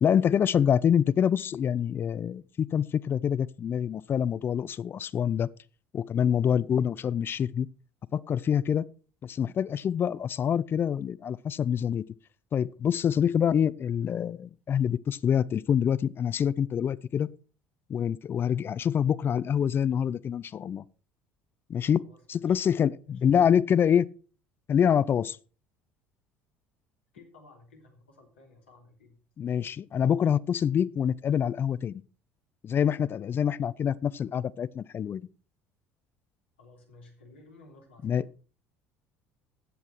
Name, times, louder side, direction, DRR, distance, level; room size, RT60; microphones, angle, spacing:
voice 1, 0.0-5.5 5.9-7.7 8.1-8.8 9.2-12.0 12.5-17.3 17.9-20.8 21.7-22.0 22.3-24.1 24.7-25.4 29.4-32.0 32.6-35.2 38.0-38.2, left 8 dB, 40° left, 0.5 m, -26 dB
voice 2, 21.9-22.6 23.0-23.2 27.1-29.2 36.6-38.2, left 2 dB, 80° left, 3.2 m, -55 dB
14.0 x 8.1 x 4.6 m
figure-of-eight pair, 60°, 6 cm